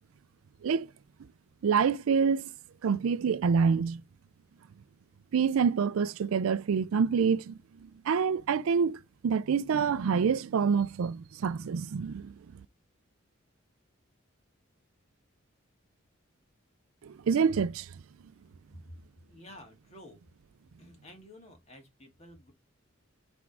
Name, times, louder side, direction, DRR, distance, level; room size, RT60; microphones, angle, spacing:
voice 1, 1.6-2.5 2.8-4.0 5.3-7.6 8.1-12.3 17.0-17.9, right 6 dB, 80° right, 0.4 m, -27 dB
voice 2, 19.3-20.2 20.8-22.5, left 1 dB, 30° left, 2.1 m, -51 dB
5.9 x 3.6 x 4.8 m
head